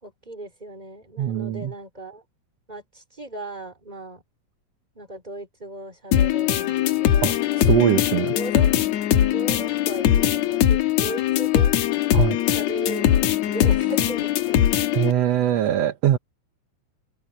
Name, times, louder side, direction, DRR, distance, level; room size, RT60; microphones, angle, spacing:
voice 1, 0.0-2.2 2.7-4.2 4.9-8.7 9.3-11.7 12.5-13.1 13.4-14.7, right 1 dB, 15° right, 4.7 m, -37 dB
voice 2, 1.2-1.7 7.2-7.3 7.6-8.3 12.1-12.4 14.9-16.2, right 11 dB, 65° right, 2.0 m, -21 dB
sound 1, 6.1-15.1, left 11 dB, 75° left, 2.3 m, -21 dB
open air
omnidirectional pair, 3.3 m